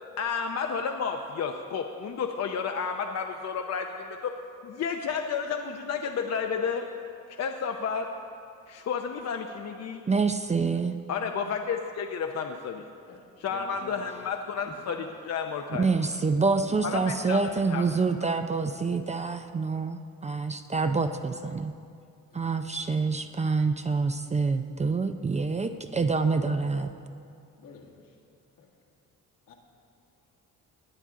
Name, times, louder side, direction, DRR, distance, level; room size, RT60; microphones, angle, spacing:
voice 1, 0.2-4.3 4.6-6.9 7.3-8.1 8.7-10.0 11.1-12.8 13.4-15.0 15.3-15.9 16.8-17.4 17.7-17.8, left 6 dB, 50° left, 4 dB, 0.7 m, -31 dB
voice 2, 10.1-11.0 15.8-21.7 22.3-26.9, right 4 dB, 20° right, 8 dB, 0.4 m, -27 dB
voice 3, 13.5-13.9 14.7-14.8 16.6-17.1 22.3-22.7 27.6-28.2 28.6-28.7 29.5-29.6, left 5 dB, 75° left, 0 dB, 1.8 m, -48 dB
17.5 x 9.8 x 3.7 m, 2.4 s
cardioid pair, 105°, 33 cm